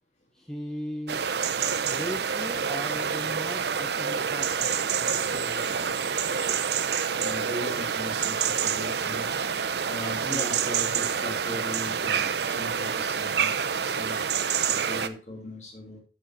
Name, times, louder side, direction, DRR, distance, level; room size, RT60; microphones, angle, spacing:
voice 1, 0.3-1.3 1.8-5.9 10.2-10.7, equal, 5° left, 4 dB, 0.7 m, -38 dB
sound 1, 1.1-15.1, right 7 dB, 70° right, 0.7 m, -27 dB
voice 2, 7.2-9.3 9.9-14.2 14.7-16.0, equal, 40° left, 1 dB, 2.9 m, -39 dB
7.6 x 7.3 x 4.5 m, 0.35 s
head